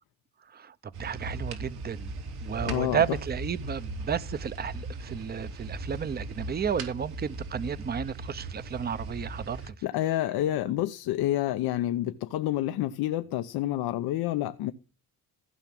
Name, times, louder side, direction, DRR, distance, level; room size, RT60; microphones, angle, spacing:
sound 1, 0.9-9.7, right 2 dB, 80° right, 3.4 m, -38 dB
voice 1, 1.0-2.1 2.4-9.7, right 7 dB, 25° right, 0.7 m, -32 dB
voice 2, 2.6-3.2 9.8-14.7, left 14 dB, 80° left, 0.8 m, -28 dB
15.5 x 5.9 x 7.5 m
cardioid pair, 95°, 37 cm